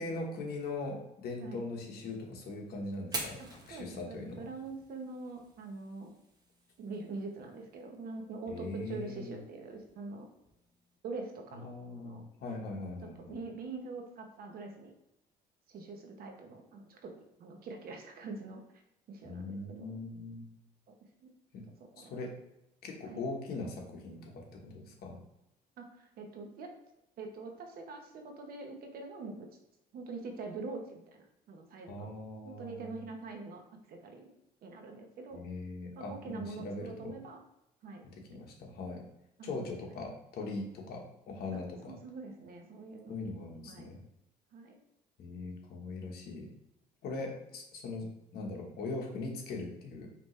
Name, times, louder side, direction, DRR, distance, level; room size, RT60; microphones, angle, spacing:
voice 1, 0.0-4.4 8.5-9.4 11.5-13.4 19.2-20.4 21.5-21.6 22.0-22.3 22.8-25.2 31.9-33.0 35.3-37.1 38.3-39.0 39.4-42.0 43.1-44.0 45.2-46.5 47.0-50.1, left 3 dB, 65° left, 1 dB, 1.3 m, -40 dB
Fire, 3.0-11.0, right 2 dB, 25° right, 1.0 m, -48 dB
voice 2, 3.7-6.1 6.8-10.3 11.0-12.3 13.0-14.9 15.7-18.6 19.1-20.0 21.2-21.3 21.8-22.2 23.0-23.2 25.8-26.7 27.2-29.5 29.9-32.1 32.4-33.6 33.9-34.2 34.6-35.4 36.0-37.4 37.8-38.0 38.3-38.4 39.4-39.5 41.5-43.2 43.6-43.9 44.5-44.8, right 3 dB, 65° right, 3 dB, 1.0 m, -44 dB
5.2 x 2.9 x 3.2 m, 0.86 s
cardioid pair, 110°, 17 cm